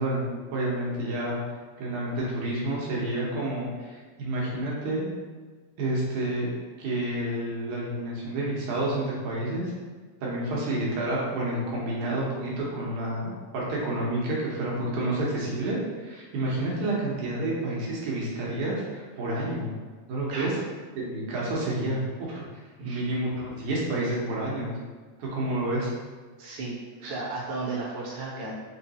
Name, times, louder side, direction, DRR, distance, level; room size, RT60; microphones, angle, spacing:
voice 1, 0.0-1.4 1.8-5.1 5.8-6.5 6.8-9.7 10.2-19.7 20.1-20.6 21.0-22.4 22.8-24.7 25.2-25.9, right 1 dB, 80° right, -5 dB, 2.4 m, -29 dB
voice 2, 26.4-28.5, right 3 dB, 55° right, -7 dB, 1.8 m, -34 dB
5.7 x 3.0 x 2.8 m, 1.5 s
omnidirectional pair, 3.4 m